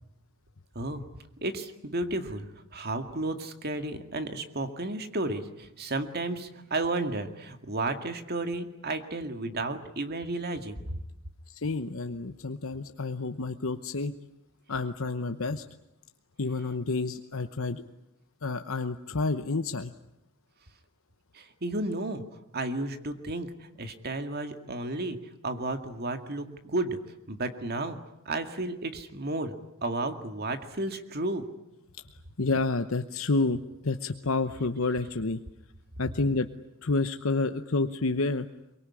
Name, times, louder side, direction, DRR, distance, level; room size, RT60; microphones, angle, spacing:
voice 1, 1.4-11.0 21.3-22.2 22.5-25.2 25.4-27.0 27.3-28.0 28.3-29.6 29.8-31.5, right 2 dB, 50° right, 7 dB, 2.2 m, -32 dB
voice 2, 11.5-14.1 14.7-15.6 16.4-17.8 18.4-19.9 32.1-35.4 36.0-36.5 36.8-38.5, left 3 dB, 70° left, 8 dB, 1.0 m, -29 dB
24.0 x 23.0 x 9.8 m, 0.89 s
head